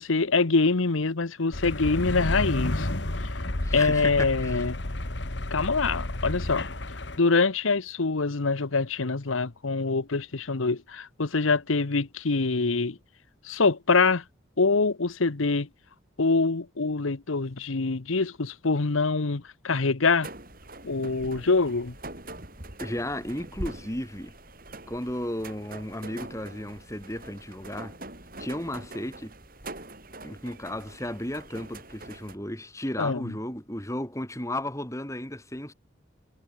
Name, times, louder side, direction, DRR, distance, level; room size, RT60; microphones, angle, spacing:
voice 1, 0.0-2.9 3.7-4.8 5.5-6.7 7.2-13.0 13.4-14.2 14.6-15.7 16.2-20.3 20.8-21.9 33.0-33.3, left 4 dB, 85° left, 1.0 m, -25 dB
sound 1, 1.5-7.2, left 1 dB, 60° left, 1.9 m, -31 dB
voice 2, 3.6-4.7 22.8-24.3 24.9-28.0 28.4-29.3 30.2-35.7, left 1 dB, 15° left, 3.1 m, -34 dB
sound 2, 20.2-32.4, right 2 dB, 45° right, 7.0 m, -43 dB
head